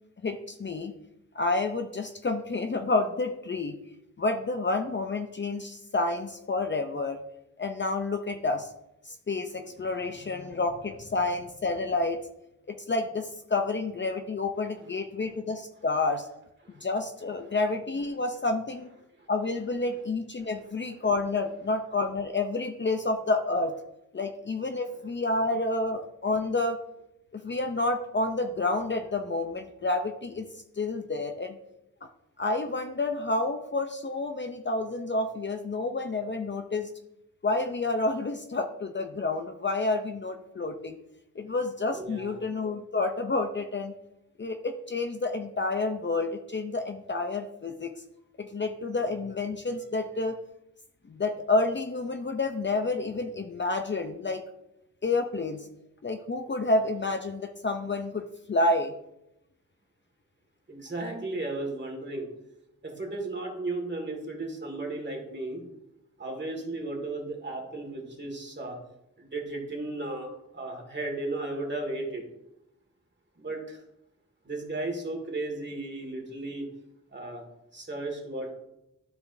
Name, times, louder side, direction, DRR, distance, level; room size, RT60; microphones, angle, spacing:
voice 1, 0.2-0.9 1.3-3.8 4.2-7.2 7.6-8.7 9.0-12.2 12.7-16.3 16.8-18.9 19.3-23.7 24.1-26.8 27.3-30.5 30.8-31.6 32.4-36.9 37.4-41.0 41.4-43.9 44.4-47.9 48.4-50.4 51.1-54.4 55.0-55.7 56.0-58.9, left 2 dB, 35° left, 6 dB, 0.6 m, -29 dB
voice 2, 41.9-42.4 60.7-62.3 62.8-65.6 66.2-68.8 69.2-70.3 70.5-72.2 73.4-73.8 74.4-76.7 77.1-77.4 77.7-78.5, right 2 dB, 35° right, 1 dB, 2.0 m, -35 dB
12.5 x 5.0 x 2.6 m, 0.85 s
wide cardioid pair, 100°, 31 cm